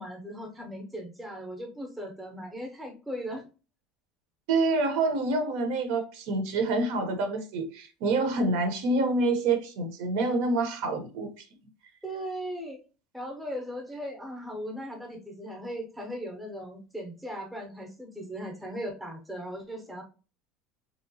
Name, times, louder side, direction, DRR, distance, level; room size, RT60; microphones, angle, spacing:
voice 1, 0.0-3.4 12.0-12.8 13.1-20.0, equal, 5° right, 0.7 m, -38 dB
voice 2, 4.5-11.4, right 3 dB, 65° right, 0.7 m, -27 dB
3.0 x 2.8 x 2.7 m
cardioid pair, 175°, 0 cm